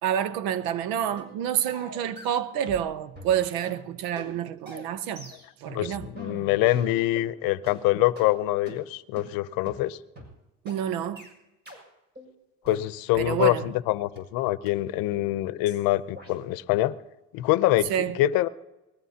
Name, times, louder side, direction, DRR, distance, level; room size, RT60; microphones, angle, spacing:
voice 1, 0.0-5.3 5.6-6.1 10.6-11.3 13.1-13.7 17.9-18.2, right 9 dB, 85° right, 0.8 m, -28 dB
sound 1, 0.7-0.8 1.2-1.4 1.7-2.9 3.1-7.3 7.7-7.8 8.2-8.3 8.7-8.8 9.2-9.3 9.7-9.8 10.2-10.3 10.7-10.8 11.2-11.3 11.7-11.8 12.2-12.3 12.6-13.8 14.2-14.3 14.7-14.8 15.2-15.3 15.7-15.8 16.2-16.3, right 1 dB, 30° right, 6.4 m, -43 dB
voice 2, 5.7-10.0 12.7-16.9 17.3-18.5, left 15 dB, 85° left, 0.7 m, -25 dB
23.5 x 20.5 x 2.9 m
supercardioid pair, 85°, 34 cm